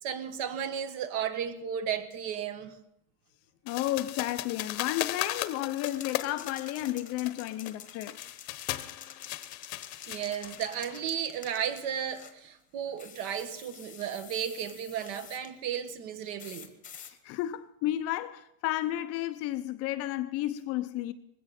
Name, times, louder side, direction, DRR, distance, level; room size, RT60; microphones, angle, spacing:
voice 1, 0.0-2.8 10.1-16.7, right 8 dB, 50° right, 1.6 m, -34 dB
voice 2, 3.6-8.2 17.0-21.1, left 14 dB, 35° left, 0.6 m, -32 dB
sound 1, 3.7-11.0, left 16 dB, 75° left, 1.1 m, -37 dB
sound 2, 5.8-12.4 13.0-15.5 16.4-17.1, left 8 dB, 20° left, 1.2 m, -49 dB
20.0 x 16.5 x 4.3 m
supercardioid pair, 160°, 43 cm